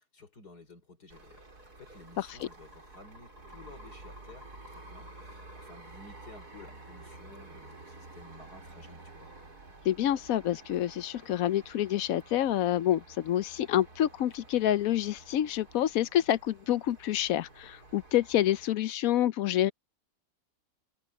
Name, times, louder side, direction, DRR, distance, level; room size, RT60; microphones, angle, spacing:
voice 1, 0.0-1.4 1.8-9.3, left 2 dB, 90° left, 5.0 m, -53 dB
sound 1, 1.1-18.7, right 2 dB, 80° right, 5.1 m, -51 dB
voice 2, 9.9-19.7, left 12 dB, 70° left, 1.0 m, -27 dB
omnidirectional pair, 1.6 m